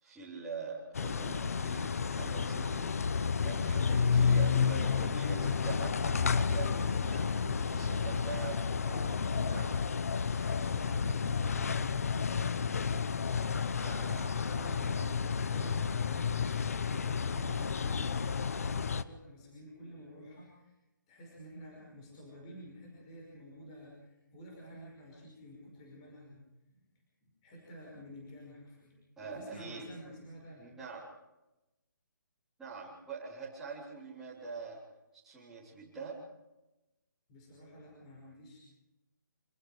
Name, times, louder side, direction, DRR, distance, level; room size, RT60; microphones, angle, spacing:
voice 1, 0.0-7.4 7.7-9.0 9.4-9.8 13.8-15.1 29.2-29.8 30.6-31.1 32.6-34.8 35.2-36.2, right 4 dB, 5° right, -9 dB, 3.8 m, -44 dB
sound 1, 1.0-19.0, left 5 dB, 45° left, 0.9 m, -31 dB
voice 2, 7.2-8.0 8.9-9.7 10.1-12.2 13.9-20.7 21.1-26.4 26.7-26.8 27.2-28.9 29.2-30.7 37.3-38.6, equal, 20° left, -2 dB, 5.5 m, -50 dB
26.0 x 20.5 x 5.0 m, 0.97 s
hypercardioid pair, 175°, 11 cm